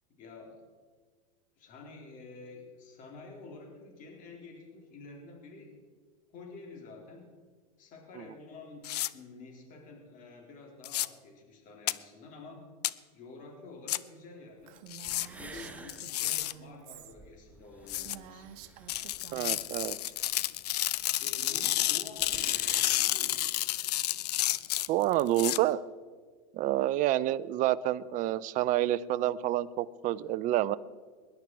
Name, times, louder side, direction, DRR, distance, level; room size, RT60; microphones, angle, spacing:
voice 1, 0.1-0.6 1.6-5.7 6.3-7.2 7.8-12.6 13.1-14.8 15.4-18.5 21.1-23.5, left 3 dB, 40° left, 1 dB, 3.6 m, -49 dB
sound 1, 8.8-9.1 10.8-11.1 11.9-12.0 12.8-12.9 13.9-14.0 14.9-15.3 15.9-16.5 17.9-18.2 18.9-25.6, left 15 dB, 80° left, 0.6 m, -30 dB
Female speech woman speaking, 14.7-17.1 17.5-17.6 17.9-19.9, right 11 dB, 60° right, 1.3 m, -50 dB
sound 2, 14.8-14.9 15.0-21.0 21.3-21.4 21.6-21.7 22.0-23.0, right 2 dB, 5° right, 1.0 m, -51 dB
voice 2, 19.3-20.0 24.9-25.8 26.5-30.8, right 14 dB, 40° right, 17 dB, 0.6 m, -28 dB
20.0 x 11.0 x 4.6 m, 1.6 s
supercardioid pair, 120°, 20 cm